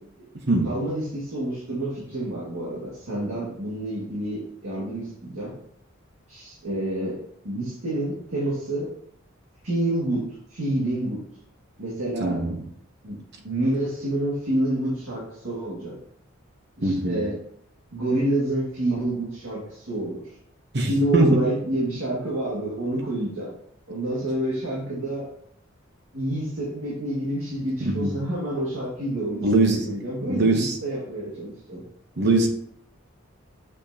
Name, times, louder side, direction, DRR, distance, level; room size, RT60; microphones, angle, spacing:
voice 1, 0.6-5.6 6.3-7.2 7.4-8.9 9.6-11.2 11.8-12.4 13.0-13.2 13.4-16.0 16.8-17.4 17.9-20.3 20.8-23.5 23.9-25.3 26.1-31.8, right 1 dB, 75° right, -6 dB, 2.0 m, -28 dB
voice 2, 12.2-12.6 16.8-17.2 20.7-21.4 27.8-28.2 29.4-29.8 30.3-30.8 32.2-32.5, right 2 dB, 55° right, 3 dB, 1.0 m, -21 dB
6.9 x 5.6 x 2.8 m, 0.68 s
head